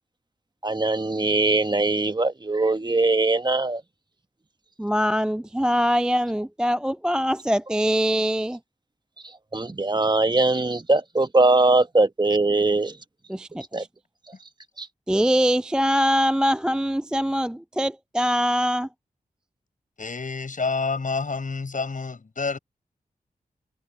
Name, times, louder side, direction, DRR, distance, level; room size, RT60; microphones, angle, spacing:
voice 1, 0.6-3.8 9.5-12.9 13.7-13.8 14.8-14.9, right 2 dB, 30° right, 1.4 m, -21 dB
voice 2, 4.8-8.6 13.3-13.9 15.1-18.9, equal, 5° right, 0.3 m, -23 dB
voice 3, 20.0-22.6, left 4 dB, 60° left, 7.6 m, -28 dB
cardioid pair, 45°, 15 cm